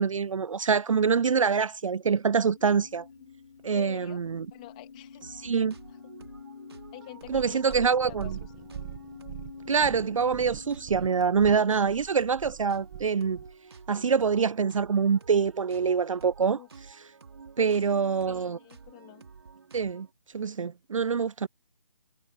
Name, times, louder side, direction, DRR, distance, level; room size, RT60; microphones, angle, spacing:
voice 1, 0.0-3.1 3.6-4.4 5.4-5.8 7.3-8.4 9.7-13.4 13.9-16.6 17.6-18.6 19.7-20.1 20.3-21.5, right 6 dB, 65° right, 0.4 m, -25 dB
sound 1, 1.9-12.0, left 6 dB, 45° left, 2.5 m, -49 dB
voice 2, 3.7-4.2 4.5-5.5 6.9-8.7 16.5-16.7 17.6-17.8 18.3-19.3, left 18 dB, 10° left, 2.0 m, -47 dB
sound 2, 5.2-20.1, right 5 dB, 45° right, 2.5 m, -51 dB
Purr, 7.2-13.5 14.3-14.4, right 12 dB, 5° right, 0.7 m, -42 dB
hypercardioid pair, 175°, 18 cm